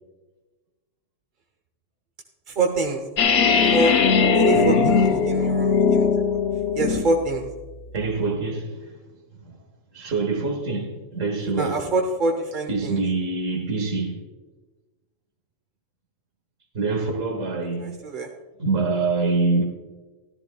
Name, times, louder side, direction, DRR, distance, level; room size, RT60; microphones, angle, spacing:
voice 1, 2.5-3.0 3.7-4.0 4.3-6.1 6.7-7.5 11.6-13.0 17.8-18.3, right 2 dB, 45° right, 0.9 m, -25 dB
sound 1, 3.2-7.2, left 5 dB, 65° left, 1.1 m, -19 dB
voice 2, 4.5-5.3 7.9-8.9 9.4-9.5 9.9-11.9 12.7-14.2 16.7-18.0 18.6-19.6, right 3 dB, 80° right, 1.9 m, -25 dB
14.0 x 13.0 x 2.3 m
omnidirectional pair, 1.3 m